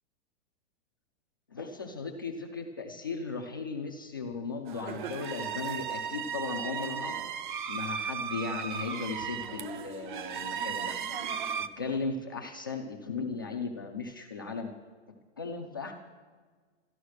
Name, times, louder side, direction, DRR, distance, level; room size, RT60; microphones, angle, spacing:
voice 1, 1.5-7.2 7.7-11.2 11.6-14.7 15.4-15.9, left 4 dB, 20° left, 1 dB, 0.4 m, -37 dB
sound 1, 4.7-11.7, right 7 dB, 45° right, 0.6 m, -36 dB
13.5 x 11.5 x 6.3 m, 1.5 s
supercardioid pair, 180°, 35 cm